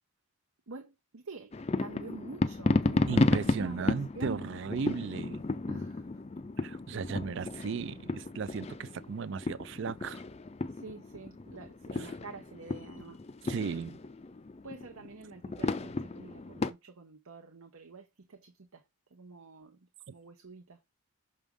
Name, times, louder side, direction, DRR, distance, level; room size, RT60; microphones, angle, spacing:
voice 1, 0.7-4.6 5.7-6.1 6.7-7.3 7.7-7.8 10.7-13.2 14.6-18.8 19.1-20.8, right 3 dB, 75° right, 0.9 m, -47 dB
sound 1, 1.5-16.7, left 2 dB, 30° left, 0.4 m, -33 dB
voice 2, 3.1-5.4 6.6-10.2 13.4-14.0, right 5 dB, 55° right, 0.3 m, -36 dB
6.1 x 5.2 x 3.6 m
head